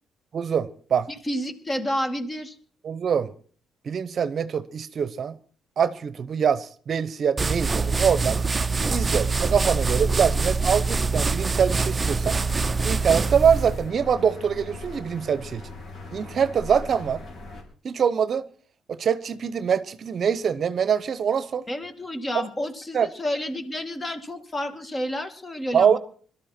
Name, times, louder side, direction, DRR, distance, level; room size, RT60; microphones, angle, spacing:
voice 1, 0.3-1.1 2.8-3.3 3.8-5.4 5.8-8.4 8.9-12.4 12.8-15.7 16.1-17.2 17.8-18.5 18.9-21.6 22.3-22.5 22.9-23.1 25.7-26.0, right 7 dB, 55° right, 0.8 m, -24 dB
voice 2, 1.2-2.6 21.7-26.0, equal, 25° left, 2.3 m, -30 dB
sound 1, 7.4-13.9, right 4 dB, 25° right, 0.6 m, -24 dB
sound 2, 12.1-17.6, left 2 dB, 60° left, 5.0 m, -40 dB
21.0 x 13.0 x 4.4 m
cardioid pair, 90°, 0 cm